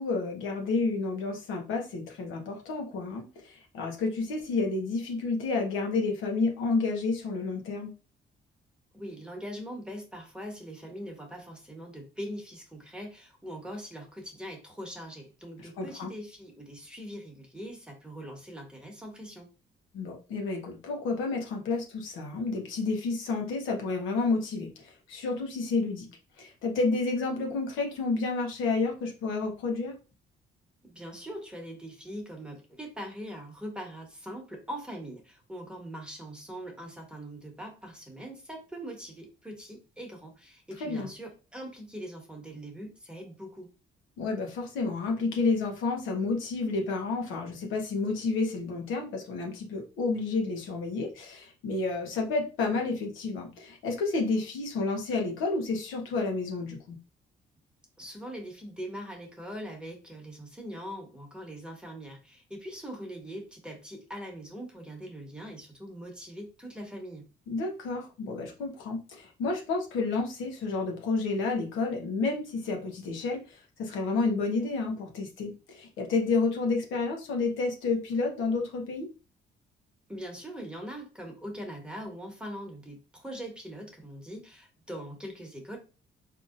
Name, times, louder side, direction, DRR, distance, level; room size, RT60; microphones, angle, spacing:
voice 1, 0.0-7.9 15.8-16.1 19.9-26.1 26.4-30.0 40.8-41.1 44.2-57.0 67.5-79.1, left 3 dB, 90° left, 1 dB, 1.0 m, -30 dB
voice 2, 8.9-19.5 30.8-43.7 58.0-67.2 80.1-85.8, equal, 5° right, 0 dB, 1.2 m, -42 dB
3.9 x 2.8 x 2.5 m, 0.32 s
cardioid pair, 90°, 20 cm